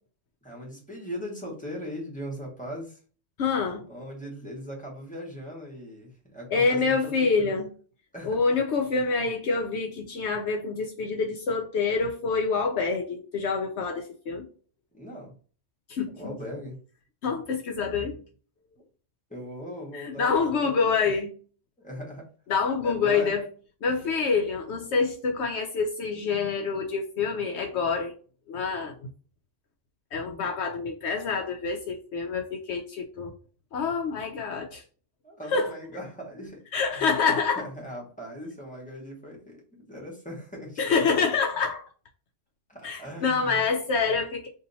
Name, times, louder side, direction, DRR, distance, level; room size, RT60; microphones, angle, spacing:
voice 1, 0.4-3.0 3.9-7.6 8.1-8.4 14.9-15.3 16.1-16.8 19.3-21.1 21.8-22.3 22.8-23.4 35.2-36.6 37.0-37.1 37.6-40.9 42.7-43.6, equal, 5° left, 1.2 m, -39 dB
voice 2, 3.4-3.9 6.5-7.7 8.2-14.5 15.9-16.4 17.2-18.2 19.9-21.3 22.5-23.4 23.8-28.1 28.5-29.1 30.1-33.3 33.7-34.8 35.5-35.7 36.7-37.7 40.8-41.8 42.8-44.5, left 5 dB, 65° left, 0.8 m, -26 dB
2.8 x 2.7 x 3.9 m
omnidirectional pair, 1.3 m